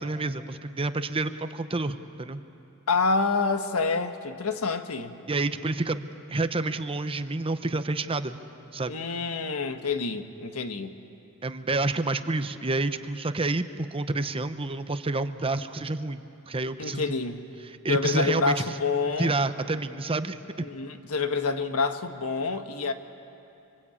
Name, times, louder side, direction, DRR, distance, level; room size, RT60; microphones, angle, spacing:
voice 1, 0.0-2.4 5.3-8.4 8.7-8.9 11.4-16.2 16.5-17.2 17.8-18.7 19.2-20.7, right 2 dB, 25° right, 10 dB, 0.8 m, -29 dB
voice 2, 2.9-5.2 8.9-11.0 16.8-17.4 17.9-19.3 20.6-22.9, left 4 dB, 85° left, 7 dB, 1.4 m, -27 dB
25.0 x 25.0 x 8.6 m, 2.8 s
head